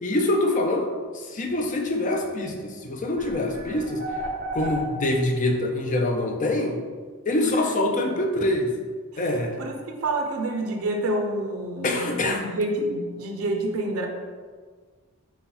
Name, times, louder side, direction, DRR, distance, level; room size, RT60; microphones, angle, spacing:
voice 1, 0.0-0.9 1.1-4.0 4.5-6.8 7.3-8.7 9.2-9.5 11.8-12.4, left 1 dB, 35° left, 3 dB, 0.5 m, -25 dB
sound 1, 2.6-2.7 3.2-5.4, right 1 dB, 40° right, 0.7 m, -32 dB
voice 2, 9.6-14.1, right 1 dB, 75° right, 3 dB, 0.7 m, -28 dB
5.6 x 2.3 x 4.2 m, 1.5 s
head